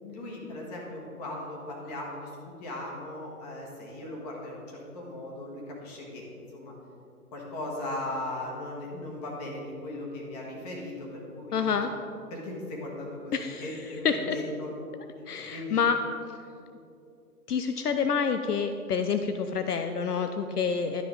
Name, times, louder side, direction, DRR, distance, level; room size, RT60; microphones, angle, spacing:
voice 1, 0.0-6.2 6.5-6.7 7.3-11.7 12.3-14.7 15.2-15.3 15.5-15.8, left 1 dB, 25° left, -2 dB, 1.7 m, -38 dB
voice 2, 11.5-11.9 13.3-13.7 14.0-14.4 15.3-16.0 17.5-21.0, left 6 dB, 75° left, 8 dB, 0.6 m, -28 dB
12.0 x 5.7 x 3.9 m, 2.6 s
figure-of-eight pair, 135°, 47 cm